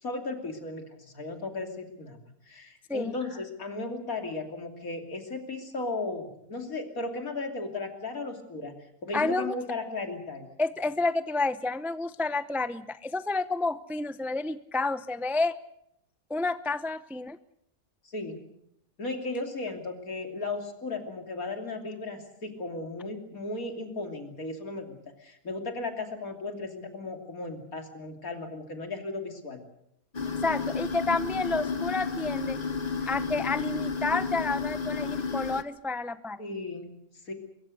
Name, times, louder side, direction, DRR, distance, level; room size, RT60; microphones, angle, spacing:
voice 1, 0.0-2.2 2.5-8.7 9.0-10.5 18.0-18.4 19.0-29.6 36.4-37.0 37.3-37.4, left 3 dB, 75° left, 4 dB, 3.5 m, -36 dB
voice 2, 9.1-9.5 10.6-15.6 16.3-17.4 30.4-32.6 33.0-36.4, left 3 dB, 5° right, 13 dB, 0.3 m, -30 dB
sound 1, 30.1-35.6, left 5 dB, 30° left, 1.0 m, -32 dB
24.0 x 22.5 x 6.6 m, 0.74 s
omnidirectional pair, 1.5 m